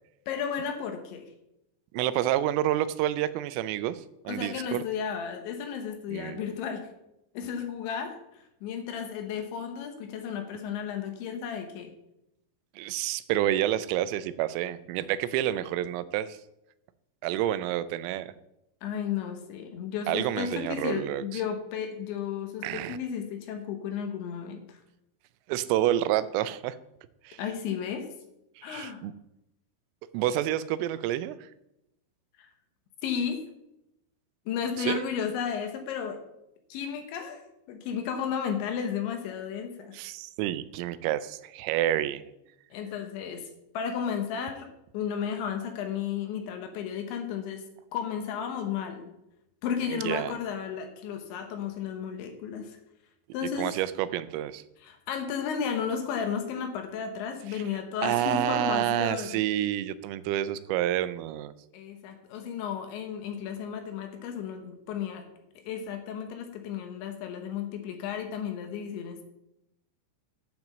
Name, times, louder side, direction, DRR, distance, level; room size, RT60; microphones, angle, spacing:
voice 1, 0.3-1.3 4.3-6.9 7.3-11.9 18.8-24.8 27.4-28.1 28.6-29.0 32.4-32.5 33.0-33.4 34.5-36.2 36.7-37.4 37.7-40.0 42.7-43.5 43.7-44.7 44.9-47.7 47.9-49.1 49.6-52.8 53.3-53.7 54.8-59.4 61.7-65.3 65.6-69.2, left 7 dB, 75° left, 5 dB, 3.1 m, -33 dB
voice 2, 1.9-4.8 6.1-6.4 12.8-16.4 17.2-18.3 20.1-21.4 22.6-23.0 25.5-26.8 27.3-27.4 28.6-29.1 30.1-31.4 34.8-35.0 39.9-42.2 49.9-50.3 53.6-54.6 57.5-57.6 58.0-61.5, right 13 dB, 85° right, 15 dB, 3.2 m, -29 dB
9.0 x 6.0 x 7.4 m, 0.84 s
omnidirectional pair, 5.8 m